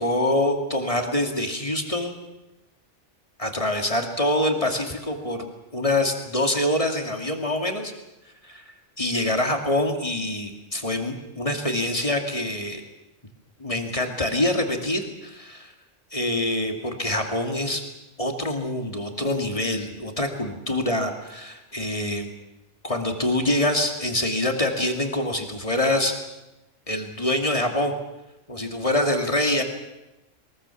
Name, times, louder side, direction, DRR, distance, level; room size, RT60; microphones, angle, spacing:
voice 1, 0.0-2.1 3.4-7.9 8.4-8.6 9.0-12.8 13.6-15.7 16.1-17.8 18.2-22.3 22.8-26.2 26.9-27.9 28.5-29.6, left 1 dB, 25° left, 4 dB, 2.6 m, -25 dB
22.5 x 21.5 x 7.2 m, 0.99 s
omnidirectional pair, 1.3 m